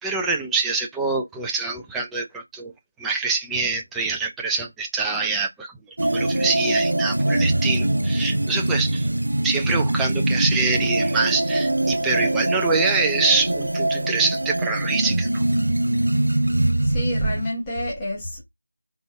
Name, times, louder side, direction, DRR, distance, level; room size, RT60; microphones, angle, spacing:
voice 1, 0.0-2.7 3.0-5.7 6.1-9.1 9.4-15.4, right 4 dB, 5° right, 0.5 m, -25 dB
sound 1, 6.0-17.5, right 1 dB, 70° right, 0.6 m, -23 dB
voice 2, 16.8-18.4, equal, 10° left, 1.4 m, -28 dB
4.0 x 3.7 x 3.3 m
figure-of-eight pair, 165°, 0 cm